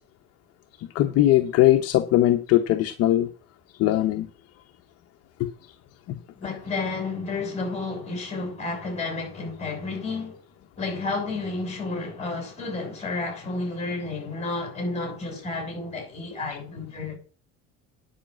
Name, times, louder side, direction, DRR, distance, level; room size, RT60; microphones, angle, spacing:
voice 1, 0.9-3.3 3.8-4.3 5.4-5.5 6.1-6.2, left 14 dB, 55° left, 0.9 m, -20 dB
voice 2, 6.4-10.4 10.8-17.2, left 3 dB, 20° left, 6.6 m, -31 dB
10.0 x 5.8 x 7.4 m
cardioid pair, 130°, 30 cm